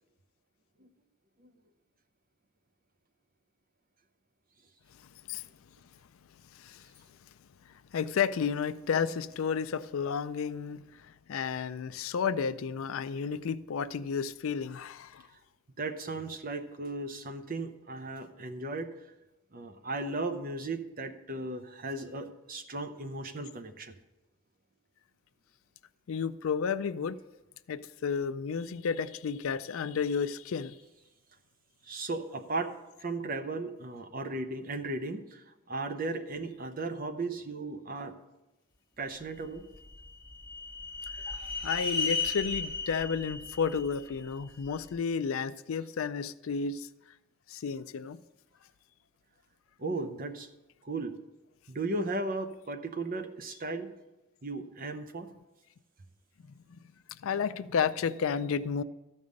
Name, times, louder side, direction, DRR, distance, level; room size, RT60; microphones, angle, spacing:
voice 1, 6.5-6.9 7.9-15.2 26.1-27.2 27.7-30.8 41.1-46.9 47.5-48.2 56.7-56.8 57.2-58.8, left 6 dB, 70° left, 0.4 m, -32 dB
voice 2, 15.8-18.9 19.5-23.9 31.8-38.2 39.0-39.6 49.8-50.5 50.8-51.2 51.7-53.9 54.4-55.3, right 2 dB, 40° right, 0.7 m, -36 dB
sound 1, 39.6-44.8, left 4 dB, 20° left, 1.3 m, -35 dB
13.0 x 5.4 x 6.4 m
head